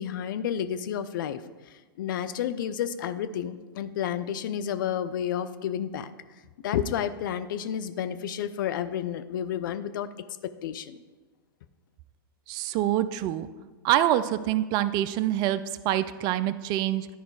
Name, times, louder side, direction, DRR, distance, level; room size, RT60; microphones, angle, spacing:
voice 1, 0.0-1.4 2.0-6.1 6.6-10.1 10.4-11.0, left 9 dB, 60° left, 13 dB, 0.5 m, -31 dB
voice 2, 12.5-13.5 13.8-17.1, right 12 dB, 35° right, 14 dB, 0.4 m, -26 dB
11.0 x 4.9 x 4.7 m, 1.3 s
hypercardioid pair, 115°, 12 cm